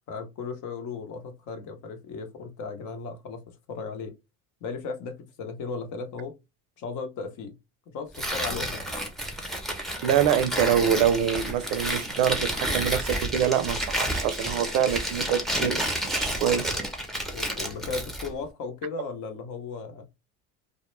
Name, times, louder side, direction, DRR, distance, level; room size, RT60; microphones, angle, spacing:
voice 1, 0.1-4.1 4.6-6.3 6.8-7.6 7.9-8.8 17.3-20.0, left 4 dB, 55° left, 0.8 m, -36 dB
Tearing, 8.1-18.3, right 1 dB, ahead, 0.6 m, -30 dB
voice 2, 10.0-16.7, right 9 dB, 75° right, 0.5 m, -25 dB
2.2 x 2.1 x 3.0 m
supercardioid pair, 105°, 35 cm